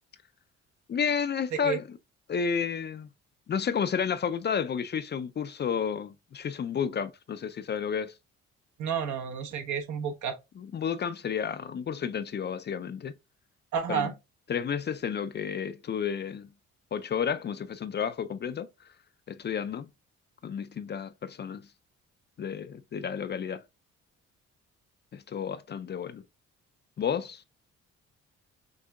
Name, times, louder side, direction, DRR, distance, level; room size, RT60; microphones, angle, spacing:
voice 1, 0.9-2.0 2.3-3.1 3.5-8.1 10.6-13.1 13.9-14.1 14.5-16.5 16.9-18.7 19.3-19.9 20.4-21.6 22.4-23.6 25.1-26.2 27.0-27.5, left 7 dB, 35° left, 0.4 m, -31 dB
voice 2, 8.8-10.4 13.7-14.1, right 7 dB, 70° right, 1.0 m, -30 dB
6.3 x 2.7 x 2.3 m
cardioid pair, 90°, 30 cm